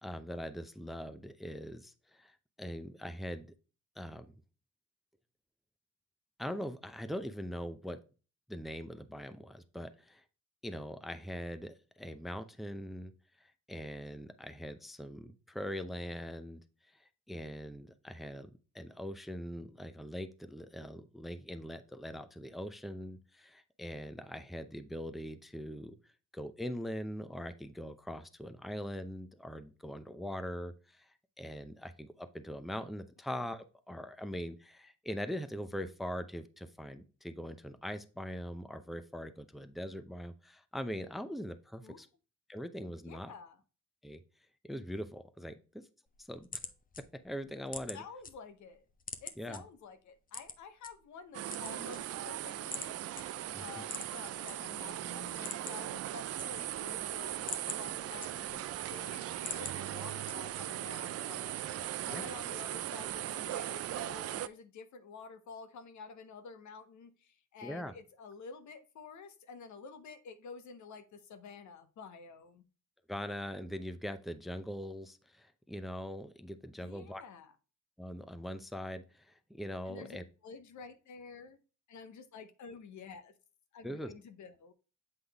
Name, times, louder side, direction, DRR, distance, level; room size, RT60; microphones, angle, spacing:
voice 1, 0.0-3.5 4.0-4.3 6.4-8.0 8.5-10.2 10.6-13.1 13.4-16.6 17.0-18.5 18.7-26.0 26.3-42.1 42.5-43.3 44.0-44.2 44.6-45.8 46.2-46.6 47.2-48.0 49.4-49.6 53.5-53.8 62.1-62.3 67.6-67.9 73.1-77.2 78.0-80.2 83.8-84.1, equal, ahead, 0.6 m, -42 dB
voice 2, 43.1-43.6 47.9-48.8 49.2-53.0 53.6-58.6 58.9-61.6 62.0-72.6 76.8-77.5 79.8-80.2 80.4-81.6 81.9-83.3 83.7-84.7, left 5 dB, 70° left, 0.9 m, -50 dB
sound 1, 46.1-48.3 48.7-49.6 50.3-50.9 51.4-52.3 52.7-52.9 53.2-53.3 53.8-54.5 54.9-55.0 55.3-55.9 56.2-56.9 57.3-58.7 59.1-59.8 60.3-60.7, left 4 dB, 30° left, 0.8 m, -43 dB
sound 2, 51.3-64.5, right 13 dB, 55° right, 0.4 m, -39 dB
8.0 x 3.8 x 3.4 m
cardioid pair, 90°, 30 cm